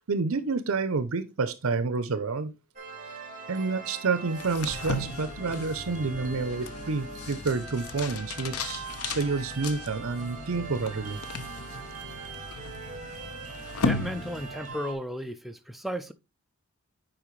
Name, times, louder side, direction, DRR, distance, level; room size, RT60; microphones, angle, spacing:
voice 1, 0.1-2.5 3.5-11.2, right 4 dB, 70° right, 0.6 m, -29 dB
sound 1, 2.8-14.9, right 5 dB, 35° right, 1.9 m, -42 dB
sound 2, 4.3-14.8, left 3 dB, 80° left, 0.7 m, -36 dB
voice 2, 13.8-16.1, equal, ahead, 0.4 m, -34 dB
8.7 x 4.9 x 3.1 m
head